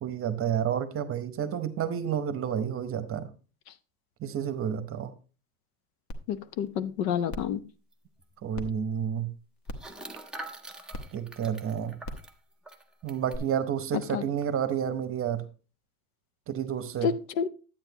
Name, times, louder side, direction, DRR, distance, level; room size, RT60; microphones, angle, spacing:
voice 1, 0.0-3.3 4.2-5.1 8.4-9.3 11.1-12.0 13.0-15.4 16.5-17.1, right 8 dB, 30° right, 11 dB, 0.9 m, -30 dB
sound 1, 6.1-6.2 6.7-6.8 7.3-7.5 8.6-8.7 9.7-9.9 10.9-11.0 12.0-12.3 13.3-13.4, left 1 dB, 40° left, 1.2 m, -37 dB
voice 2, 6.3-7.6 14.1-14.2 17.0-17.5, left 7 dB, 80° left, 14 dB, 0.9 m, -29 dB
sound 2, 7.9-8.0 8.2-8.4 9.8-13.4 14.0-14.1 14.4-14.7, right 2 dB, ahead, 0.4 m, -45 dB
10.5 x 8.7 x 2.8 m, 0.34 s
cardioid pair, 145°, 44 cm